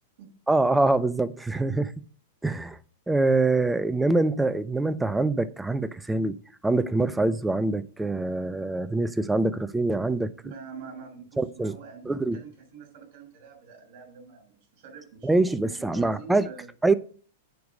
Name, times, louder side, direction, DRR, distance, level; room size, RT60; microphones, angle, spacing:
voice 1, 0.5-1.9 2.4-2.8 3.1-6.4 6.6-10.3 11.4-11.8 12.1-12.4 15.2-16.5 16.8-16.9, right 2 dB, 5° right, 0.5 m, -24 dB
voice 2, 10.4-16.7, right 5 dB, 55° right, 4.9 m, -46 dB
9.3 x 4.8 x 6.3 m
hypercardioid pair, 110°, 0 cm